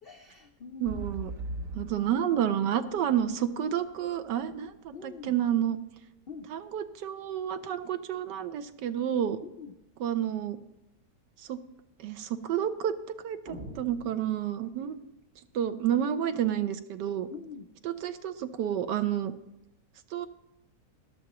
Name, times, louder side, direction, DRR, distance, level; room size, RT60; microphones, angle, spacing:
voice 1, 0.0-1.1 4.9-5.3 6.3-6.5 9.4-9.7 17.3-17.7, left 5 dB, 75° left, 5 dB, 0.5 m, -44 dB
voice 2, 0.8-1.3 1.7-5.8 6.5-9.4 10.0-10.6 11.5-11.6 12.0-12.9 13.2-14.9 15.5-17.3 17.8-19.3 20.1-20.3, right 10 dB, 85° right, 10 dB, 1.4 m, -30 dB
sound 1, 0.9-4.7 5.3-5.4, right 2 dB, 55° right, 1.2 m, -40 dB
sound 2, 13.5-15.1, right 1 dB, 40° right, 0.9 m, -45 dB
17.0 x 12.0 x 3.0 m, 0.89 s
omnidirectional pair, 1.8 m